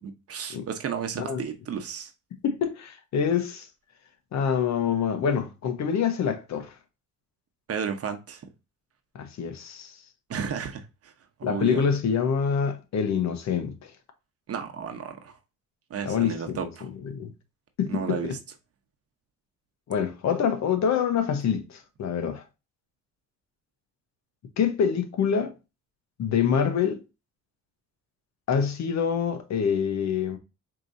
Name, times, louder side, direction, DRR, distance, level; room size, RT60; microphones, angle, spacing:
voice 1, 0.0-2.1 7.7-8.4 10.3-11.1 11.5-11.8 14.5-15.4 15.9-16.9 17.9-18.4, right 6 dB, 50° right, 0.9 m, -33 dB
voice 2, 2.4-3.7 4.3-6.7 9.1-10.0 11.4-13.9 16.0-16.7 17.0-17.3 17.8-18.3 19.9-22.4 24.6-25.5 26.2-27.0 28.5-30.4, left 7 dB, 65° left, 0.9 m, -26 dB
4.6 x 2.9 x 2.6 m
cardioid pair, 90°, 30 cm